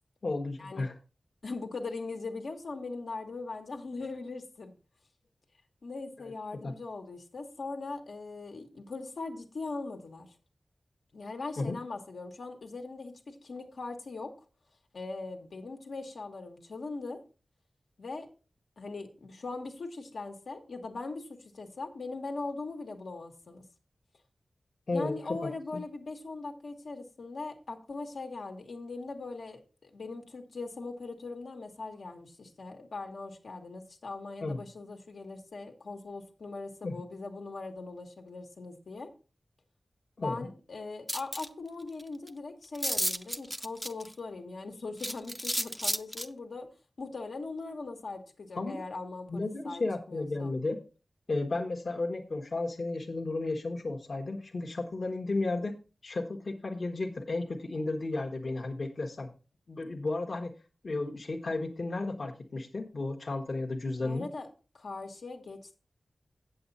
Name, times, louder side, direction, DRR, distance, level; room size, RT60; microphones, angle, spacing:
voice 1, 0.2-0.9 6.2-6.7 11.6-11.8 24.9-25.8 34.4-34.6 36.8-36.9 40.2-40.5 48.5-48.8 49.3-50.8 51.3-55.7 56.0-59.3 59.7-60.5 60.8-64.3, left 2 dB, 55° left, 1 dB, 1.1 m, -33 dB
voice 2, 1.4-4.7 5.8-10.4 11.1-14.3 14.9-17.2 18.0-18.3 18.8-23.7 24.9-39.1 40.2-46.7 47.0-49.8 50.1-50.5 64.0-64.5 64.7-65.8, left 3 dB, 85° left, 3 dB, 1.4 m, -40 dB
sound 1, 41.1-41.5 42.0-42.1 42.3-42.4 42.7-44.1 45.0-46.3, equal, ahead, 0.5 m, -32 dB
8.1 x 7.8 x 4.1 m, 0.33 s
wide cardioid pair, 90°, 0 cm